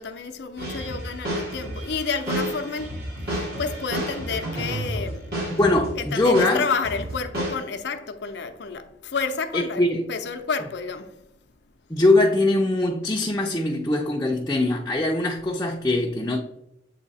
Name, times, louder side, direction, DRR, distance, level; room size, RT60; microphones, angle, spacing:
voice 1, 0.0-2.9 3.3-5.3 6.0-9.8 10.1-11.2, left 5 dB, 70° left, 0.6 m, -30 dB
sound 1, 0.6-6.0 6.3-7.6, right 1 dB, 60° right, 2.3 m, -31 dB
voice 2, 5.6-6.6 9.5-10.0 11.9-16.4, left 2 dB, 15° left, 0.5 m, -22 dB
8.1 x 2.8 x 4.1 m
head